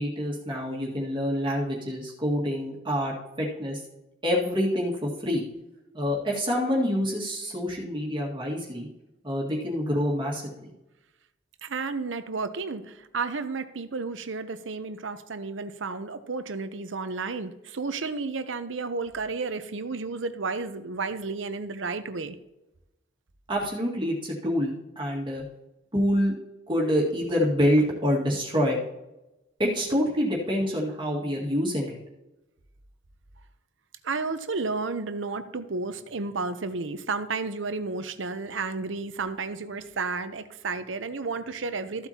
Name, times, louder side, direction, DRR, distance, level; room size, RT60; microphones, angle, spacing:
voice 1, 0.0-3.8 4.2-5.4 5.9-8.9 9.2-10.7 23.5-25.4 25.9-26.3 26.7-28.8 29.6-32.0, equal, 25° right, -3 dB, 1.9 m, -26 dB
voice 2, 11.6-22.4 34.0-42.1, right 4 dB, 80° right, 10 dB, 0.8 m, -32 dB
14.0 x 8.1 x 2.9 m, 0.96 s
head